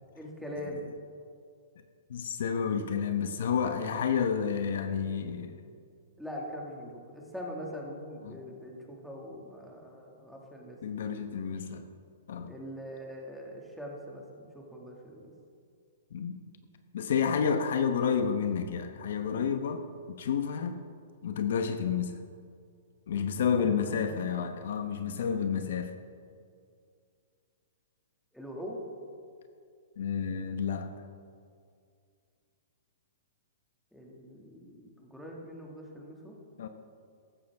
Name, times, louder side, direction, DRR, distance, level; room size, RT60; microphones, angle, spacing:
voice 1, 0.1-0.9 6.2-10.8 12.5-15.3 23.6-24.4 28.3-28.8 33.9-36.3, equal, ahead, -2 dB, 2.1 m, -42 dB
voice 2, 2.1-5.6 8.2-8.4 10.8-11.8 12.3-12.5 16.1-16.4 16.9-20.8 21.2-22.2 23.1-25.9 30.0-31.0 36.6-36.7, left 7 dB, 70° left, 8 dB, 1.0 m, -30 dB
15.0 x 12.5 x 3.6 m, 2.3 s
hypercardioid pair, 150°, 0 cm